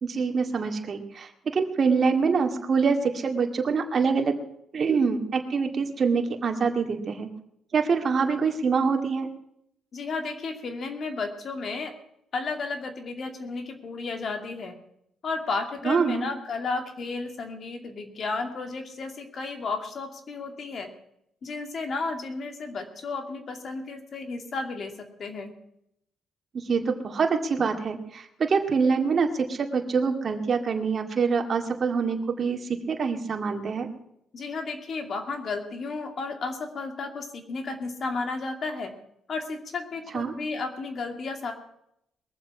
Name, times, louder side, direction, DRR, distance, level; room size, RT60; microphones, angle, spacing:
voice 1, 0.0-4.3 4.7-7.3 7.7-9.3 15.8-16.3 26.5-33.9 40.1-40.3, right 5 dB, 45° right, 4 dB, 2.1 m, -25 dB
voice 2, 9.9-11.9 12.3-14.8 15.2-20.9 21.4-25.5 34.3-38.9 39.3-41.5, left 3 dB, 50° left, 5 dB, 2.4 m, -33 dB
21.5 x 7.5 x 6.0 m, 0.76 s
cardioid pair, 90°, 0 cm